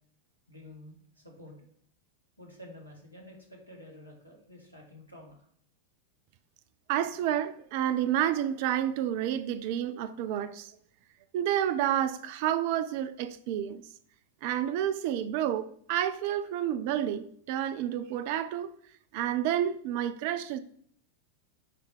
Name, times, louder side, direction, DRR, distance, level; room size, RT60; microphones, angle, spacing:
voice 1, 0.5-1.7 2.4-5.5, left 1 dB, 90° left, 2.0 m, -50 dB
voice 2, 6.9-10.7 11.3-13.8 14.4-18.7 19.1-20.6, right 11 dB, 45° right, 0.5 m, -30 dB
10.0 x 3.6 x 4.4 m
figure-of-eight pair, 90°, 0 cm